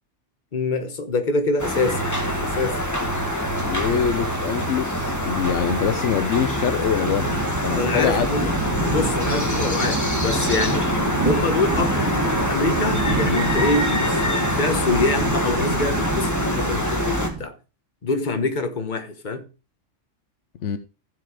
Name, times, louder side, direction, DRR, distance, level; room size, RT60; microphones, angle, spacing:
voice 1, 0.5-2.1 2.4-2.9 7.7-8.6 8.9-10.9 11.2-17.6 18.0-19.5, left 3 dB, 40° left, 1.3 m, -25 dB
sound 1, 1.6-17.3, left 1 dB, 15° left, 1.8 m, -25 dB
sound 2, 1.8-11.0, right 5 dB, 45° right, 1.0 m, -36 dB
voice 2, 3.5-7.3 7.6-8.3 20.6-20.8, left 8 dB, 75° left, 1.0 m, -24 dB
sound 3, 7.0-17.4, right 3 dB, 20° right, 2.3 m, -28 dB
15.0 x 5.0 x 4.9 m
omnidirectional pair, 1.3 m